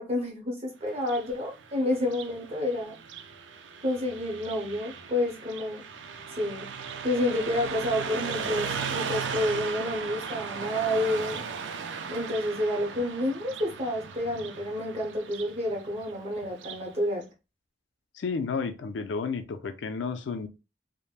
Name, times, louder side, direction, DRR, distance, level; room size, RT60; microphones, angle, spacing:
voice 1, 0.0-2.9 3.8-5.8 6.4-6.7 7.0-11.4 12.1-17.2, left 1 dB, 35° right, 1.0 m, -29 dB
Car passing by, 0.9-16.9, right 6 dB, 85° right, 0.4 m, -37 dB
voice 2, 18.1-20.5, left 5 dB, 80° left, 0.4 m, -32 dB
3.3 x 2.1 x 2.4 m
head